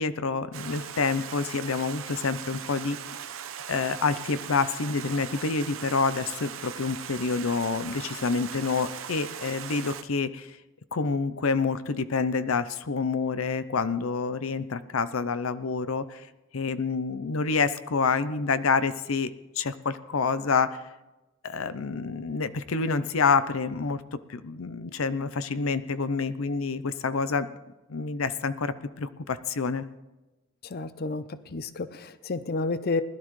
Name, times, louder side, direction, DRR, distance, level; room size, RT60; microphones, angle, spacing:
voice 1, 0.0-3.0 3.7-10.6 10.9-16.3 16.5-19.3 19.6-20.8 21.4-24.0 24.3-27.5 27.9-29.9, left 4 dB, 85° left, 13 dB, 0.6 m, -27 dB
Stream, 0.5-10.0, right 8 dB, 80° right, 0.8 m, -39 dB
voice 2, 30.6-31.2 31.5-33.0, left 3 dB, 50° left, 12 dB, 0.6 m, -30 dB
20.5 x 12.0 x 3.2 m, 1.1 s
head